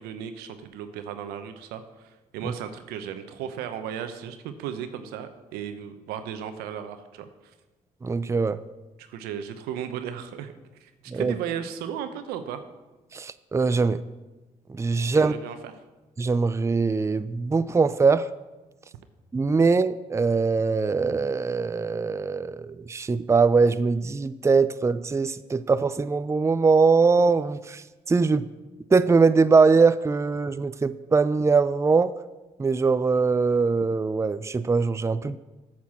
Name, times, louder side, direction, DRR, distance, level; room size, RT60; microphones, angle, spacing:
voice 1, 0.0-7.5 9.0-10.5 10.8-12.6 15.1-15.7, right 9 dB, 90° right, 9 dB, 0.8 m, -35 dB
voice 2, 8.0-8.6 11.1-11.3 13.1-14.0 14.7-15.3 16.2-18.3 19.3-28.5 28.9-32.1 32.6-35.4, right 4 dB, 20° right, 14 dB, 0.4 m, -22 dB
8.7 x 6.0 x 7.3 m, 1.1 s
supercardioid pair, 60°, 16 cm